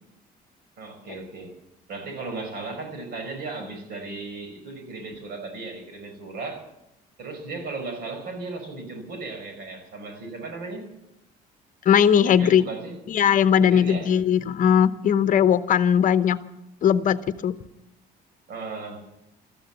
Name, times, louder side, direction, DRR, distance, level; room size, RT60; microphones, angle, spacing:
voice 1, 0.8-1.6 1.9-6.7 7.2-10.9 12.2-13.0 13.6-14.1 18.5-19.0, right 3 dB, 70° right, 4.9 m, -36 dB
voice 2, 11.8-12.6 13.1-16.4 16.8-17.6, left 8 dB, 50° left, 0.8 m, -19 dB
14.5 x 14.0 x 7.1 m
cardioid pair, 110°, 17 cm